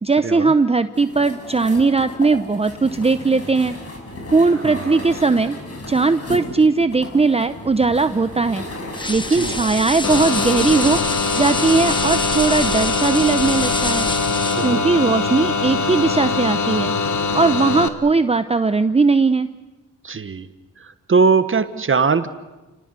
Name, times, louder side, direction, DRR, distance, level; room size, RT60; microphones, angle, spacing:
voice 1, 0.0-3.7 4.3-5.6 5.9-8.6 9.1-11.0 11.3-14.1 14.6-16.9 17.3-19.5, right 4 dB, 20° right, 11 dB, 0.7 m, -18 dB
sound 1, 0.9-12.3, left 1 dB, 50° left, 7.1 m, -34 dB
voice 2, 4.6-5.1 9.3-9.6 14.5-14.9 20.0-20.5 21.1-22.3, right 5 dB, 40° right, 11 dB, 1.3 m, -20 dB
sound 2, 8.9-14.8, left 2 dB, 15° left, 1.2 m, -27 dB
sound 3, 10.0-17.9, left 4 dB, 65° left, 1.7 m, -22 dB
30.0 x 18.5 x 8.2 m, 1.1 s
cardioid pair, 90°, 32 cm